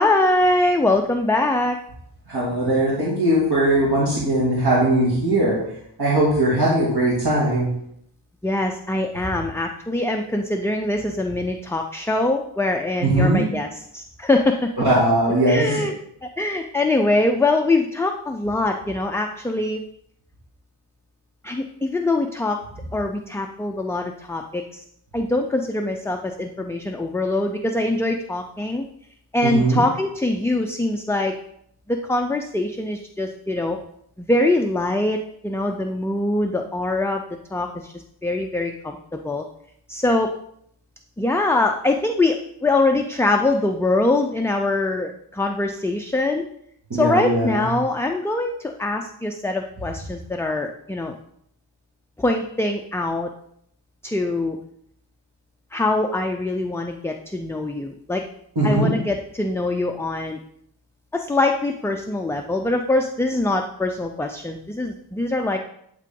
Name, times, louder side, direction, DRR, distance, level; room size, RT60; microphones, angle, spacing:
voice 1, 0.0-1.8 8.4-14.7 15.5-15.9 16.2-19.8 21.4-22.6 22.9-24.8 25.1-28.8 29.3-31.4 31.9-33.8 34.2-37.2 37.5-39.4 39.9-40.3 41.2-46.5 46.9-51.2 52.2-53.3 54.0-54.6 55.7-58.3 58.6-60.4 61.1-65.6, left 2 dB, 5° left, 3 dB, 0.4 m, -23 dB
voice 2, 2.3-5.6 6.0-7.7 9.2-9.3 13.0-13.5 14.8-15.8 29.4-29.8 46.9-47.7 58.6-59.0, right 1 dB, 60° right, -7 dB, 2.1 m, -20 dB
11.0 x 3.7 x 3.7 m, 0.71 s
wide cardioid pair, 110°, 43 cm